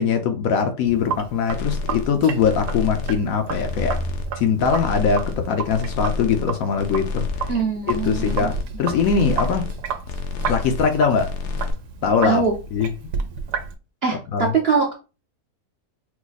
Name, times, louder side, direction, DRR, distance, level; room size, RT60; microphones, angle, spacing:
voice 1, 0.0-4.0 4.3-7.5 7.9-9.7 10.5-11.3 12.0-12.4 12.7-12.9 14.3-14.5, left 6 dB, 70° left, 0.9 m, -21 dB
Sink (filling or washing), 0.9-13.7, right 6 dB, 80° right, 1.1 m, -32 dB
sound 1, 1.5-2.1 2.4-3.2 3.5-4.3 4.6-5.4 5.7-6.5 6.8-7.6 7.9-8.6 9.0-9.8 10.0-10.9 11.1-11.7, left 4 dB, 85° left, 1.3 m, -29 dB
voice 2, 7.5-8.5 12.2-12.5 14.0-14.9, right 5 dB, 50° right, 0.8 m, -22 dB
4.7 x 2.1 x 3.9 m
omnidirectional pair, 1.7 m